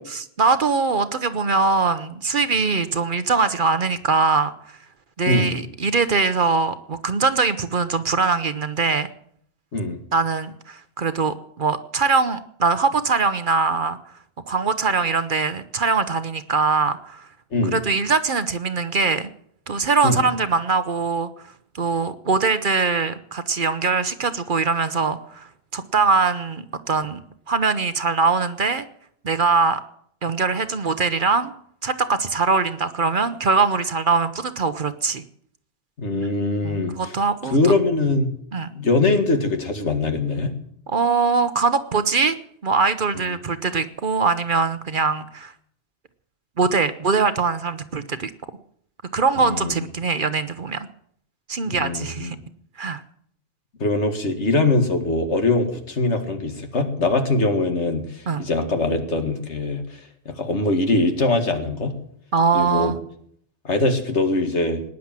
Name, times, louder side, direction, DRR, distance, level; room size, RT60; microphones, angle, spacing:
voice 1, 0.4-4.5 5.2-9.1 10.1-14.0 14.5-17.3 17.7-19.3 19.7-27.2 27.5-28.8 29.2-29.8 30.2-31.5 31.8-35.2 36.6-37.7 38.5-38.7 40.9-42.4 42.6-45.5 46.6-48.3 49.1-50.9 51.5-52.4 52.8-53.0 58.3-58.5 62.3-63.0, right 4 dB, 50° right, 12 dB, 0.9 m, -22 dB
voice 2, 5.3-5.6 9.7-10.0 17.5-17.8 20.0-20.3 36.0-37.2 37.4-38.3 38.8-40.5 49.4-49.8 51.7-52.3 53.8-59.8 60.3-61.9 62.5-62.9 63.6-64.8, left 2 dB, 75° left, 5 dB, 2.2 m, -22 dB
19.0 x 10.0 x 7.4 m, 0.68 s
omnidirectional pair, 1.2 m